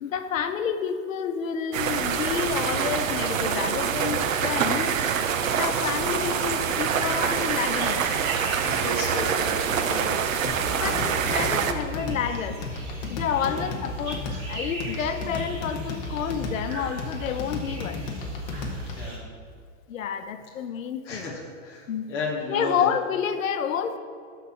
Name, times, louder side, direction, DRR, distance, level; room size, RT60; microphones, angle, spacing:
voice 1, 0.0-4.9 5.5-8.0 10.7-12.6 13.1-18.0 19.9-21.3 21.9-22.1 22.5-24.0, left 7 dB, 80° left, 9 dB, 0.9 m, -29 dB
sound 1, 1.7-11.7, right 7 dB, 75° right, 0.9 m, -25 dB
sound 2, 7.4-19.2, right 2 dB, 35° right, 2.4 m, -41 dB
voice 2, 8.6-10.8 13.4-13.7 18.9-19.2 21.0-22.9, left 2 dB, 5° left, -5 dB, 0.4 m, -34 dB
sound 3, 10.4-19.2, left 2 dB, 30° left, 1.1 m, -34 dB
12.0 x 4.2 x 5.6 m, 2.2 s
supercardioid pair, 170°, 40 cm